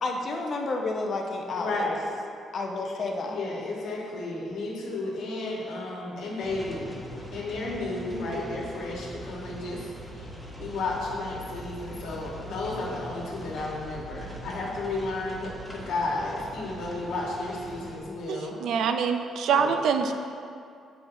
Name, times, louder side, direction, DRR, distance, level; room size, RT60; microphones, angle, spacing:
voice 1, 0.0-1.9 2.5-3.4, left 3 dB, 50° left, 1 dB, 0.7 m, -30 dB
voice 2, 1.6-2.0 3.3-7.0 7.3-9.8 10.1-10.3 10.6-18.6 19.5-19.7, left 2 dB, 85° left, -4 dB, 1.4 m, -33 dB
sound 1, 6.4-18.0, equal, ahead, 1.0 m, -42 dB
voice 3, 18.3-20.1, right 6 dB, 75° right, 7 dB, 0.4 m, -25 dB
7.5 x 5.5 x 2.7 m, 2.4 s
cardioid pair, 90°, 0 cm